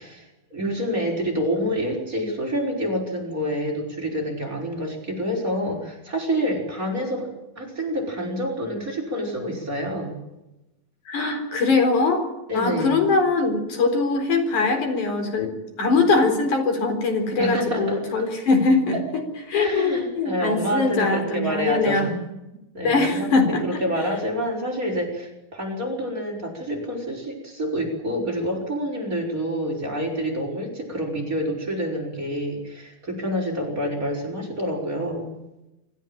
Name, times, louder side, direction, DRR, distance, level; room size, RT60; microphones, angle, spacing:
voice 1, 0.0-7.3 7.6-10.2 12.5-13.0 17.4-18.3 18.9-19.0 19.5-22.2 22.7-35.4, equal, 25° right, 2 dB, 5.8 m, -27 dB
voice 2, 11.1-12.3 12.5-22.1 22.8-23.8, left 3 dB, 75° left, 5 dB, 5.6 m, -22 dB
26.5 x 14.5 x 9.1 m, 0.95 s
omnidirectional pair, 3.5 m